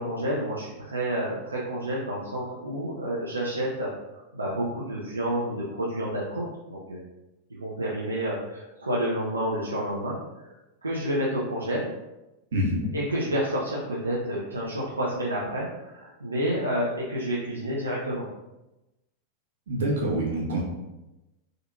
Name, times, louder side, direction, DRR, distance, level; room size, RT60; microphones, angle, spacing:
voice 1, 0.0-7.0 7.5-10.5 10.8-11.9 12.9-18.2, right 1 dB, 85° right, -7 dB, 0.5 m, -29 dB
voice 2, 19.7-20.6, right 1 dB, 65° right, -3 dB, 0.9 m, -26 dB
3.7 x 2.7 x 2.3 m, 0.98 s
figure-of-eight pair, 90°, 0 cm